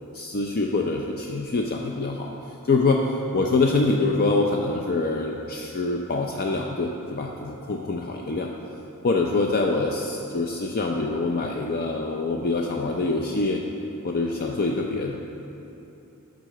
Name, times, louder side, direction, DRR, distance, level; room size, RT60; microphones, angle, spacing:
voice 1, 0.1-2.3 2.6-8.5 9.0-13.6 14.0-15.1, left 3 dB, 45° left, 1 dB, 0.5 m, -25 dB
11.0 x 4.0 x 6.7 m, 2.9 s
head